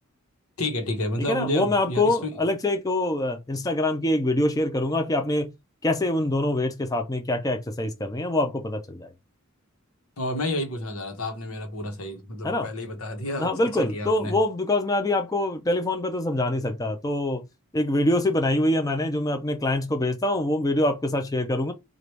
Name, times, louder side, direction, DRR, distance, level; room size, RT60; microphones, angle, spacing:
voice 1, 0.6-2.4 10.2-14.4, left 1 dB, 85° left, 1.2 m, -30 dB
voice 2, 1.3-5.5 5.8-9.1 12.4-12.7 13.4-17.5 17.7-21.7, left 1 dB, 15° left, 0.5 m, -24 dB
4.7 x 2.5 x 3.2 m
head